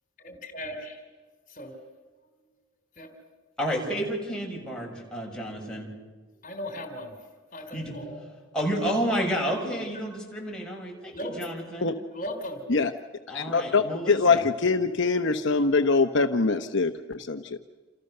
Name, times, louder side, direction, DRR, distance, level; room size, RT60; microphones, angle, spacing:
voice 1, 0.2-1.0 1.5-1.7 3.0-3.1 6.4-7.3 7.5-8.2 11.1-11.5 12.1-12.6, equal, 40° left, 6 dB, 3.6 m, -37 dB
voice 2, 3.6-5.9 7.7-7.9 8.5-11.9 13.3-14.4, equal, 5° left, -2 dB, 6.8 m, -30 dB
voice 3, 13.3-17.6, left 4 dB, 55° left, 6 dB, 1.0 m, -23 dB
29.0 x 28.5 x 6.7 m, 1.3 s
head